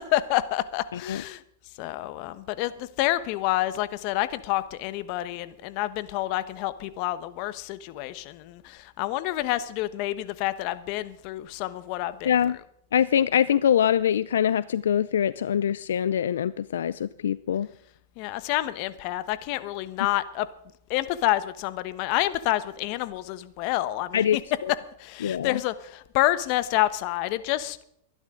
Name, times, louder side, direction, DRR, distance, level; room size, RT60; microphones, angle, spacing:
voice 1, 0.0-1.4 1.8-12.3 18.2-20.5 20.9-24.4 25.0-27.8, left 15 dB, 50° left, 14 dB, 1.2 m, -28 dB
voice 2, 12.2-12.6 12.9-17.7 24.1-24.4 24.6-24.7 25.2-25.6, left 9 dB, 85° left, 17 dB, 0.4 m, -23 dB
23.0 x 11.5 x 3.8 m, 0.71 s
hypercardioid pair, 125°, 0 cm